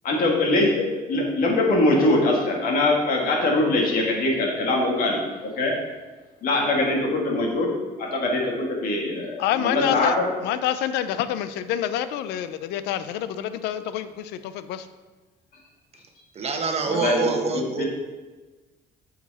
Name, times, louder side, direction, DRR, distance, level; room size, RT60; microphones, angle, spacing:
voice 1, 0.0-5.7 6.4-7.7 8.0-10.2 16.9-17.9, left 2 dB, 55° left, -1 dB, 2.0 m, -23 dB
voice 2, 9.4-10.2 10.4-14.9, left 11 dB, 90° left, 13 dB, 0.5 m, -27 dB
voice 3, 16.3-17.8, right 4 dB, 40° right, 4 dB, 1.1 m, -25 dB
8.2 x 5.1 x 4.2 m, 1.2 s
cardioid pair, 110°, 17 cm